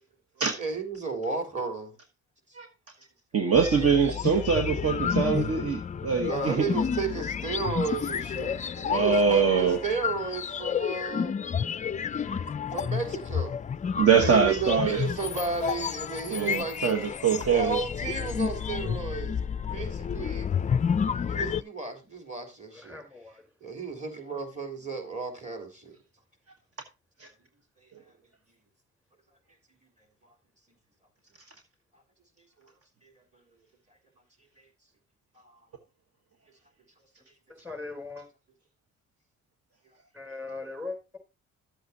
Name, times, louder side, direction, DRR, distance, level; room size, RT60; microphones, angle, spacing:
voice 1, 0.6-2.0 5.3-5.5 6.3-11.3 12.7-13.6 14.2-17.0 17.5-20.6 21.2-23.0 23.6-26.0 30.2-30.3 32.6-32.7 33.0-33.1 34.6-34.7 35.4-35.6, right 4 dB, 25° right, 3.8 m, -33 dB
voice 2, 3.3-6.7 8.9-9.8 14.0-15.0 16.3-17.8 27.2-27.3, right 6 dB, 50° right, 1.3 m, -23 dB
sound 1, 3.5-21.6, left 7 dB, 25° left, 0.4 m, -31 dB
voice 3, 15.3-15.8 22.7-23.4 37.6-38.3 40.1-41.2, left 3 dB, 5° right, 4.0 m, -40 dB
12.5 x 8.0 x 2.8 m
cardioid pair, 90°, 30 cm